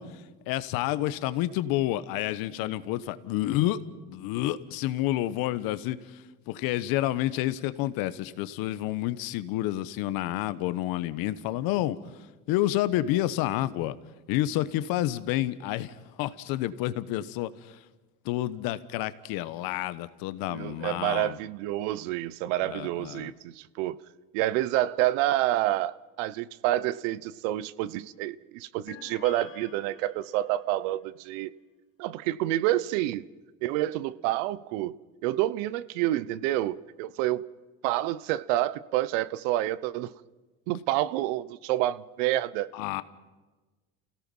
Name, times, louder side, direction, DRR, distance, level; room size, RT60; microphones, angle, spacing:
voice 1, 0.0-3.8 4.1-14.0 14.3-17.8 18.2-21.4 22.6-23.3 42.7-43.0, left 14 dB, 70° left, 1.2 m, -29 dB
voice 2, 20.5-24.0 24.3-31.5 32.0-33.2 33.6-34.9 35.2-37.4 37.8-40.1 40.7-42.7, right 14 dB, 80° right, 0.8 m, -28 dB
sound 1, 28.9-30.6, left 9 dB, 35° left, 1.2 m, -48 dB
28.5 x 17.0 x 5.5 m
supercardioid pair, 95°, 37 cm